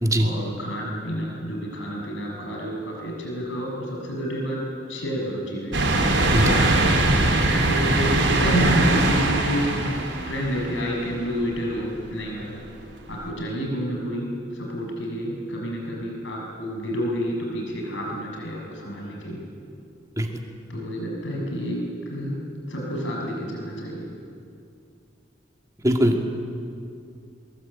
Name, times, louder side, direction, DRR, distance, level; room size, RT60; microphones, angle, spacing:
voice 1, 0.2-4.6 4.9-5.8 6.4-10.0 10.3-12.5 13.1-19.4 20.7-21.8 22.1-22.4 22.7-24.1, equal, 80° left, -1 dB, 6.6 m, -29 dB
sound 1, 5.7-11.3 11.8-11.9 13.2-13.3, right 2 dB, 75° right, 4.0 m, -21 dB
voice 2, 25.8-26.3, right 1 dB, 15° right, 3 dB, 2.2 m, -20 dB
23.0 x 22.0 x 8.8 m, 2.5 s
head